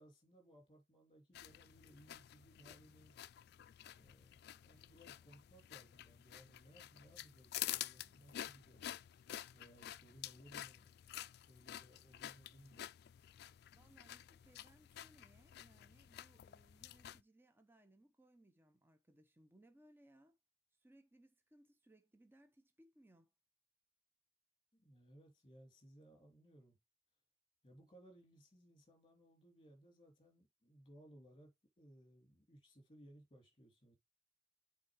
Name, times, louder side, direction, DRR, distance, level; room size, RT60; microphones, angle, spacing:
voice 1, 0.0-3.1 3.9-8.9 9.5-10.9 11.5-12.9 24.7-26.8 27.6-31.5 31.8-34.0, right 1 dB, 25° left, 2.6 m, -63 dB
sound 1, 1.3-17.2, left 13 dB, 60° left, 0.3 m, -50 dB
voice 2, 13.7-20.3 20.8-23.3, right 1 dB, 10° right, 0.8 m, -67 dB
7.3 x 4.0 x 4.7 m
head